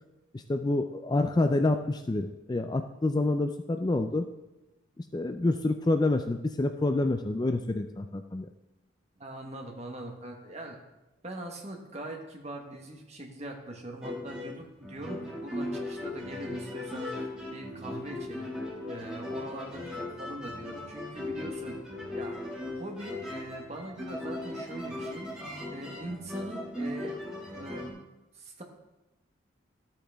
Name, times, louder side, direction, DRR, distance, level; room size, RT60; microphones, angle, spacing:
voice 1, 0.3-4.3 5.0-8.5, left 2 dB, 20° left, 7 dB, 0.3 m, -28 dB
voice 2, 9.2-10.8 11.2-18.5 18.9-21.8 22.1-22.4 22.7-25.3 25.7-27.1 27.5-27.9 28.3-28.6, right 1 dB, 30° right, 2 dB, 1.3 m, -42 dB
sound 1, 14.0-27.9, left 1 dB, 5° right, 2.0 m, -38 dB
13.0 x 8.7 x 3.5 m, 1.0 s
head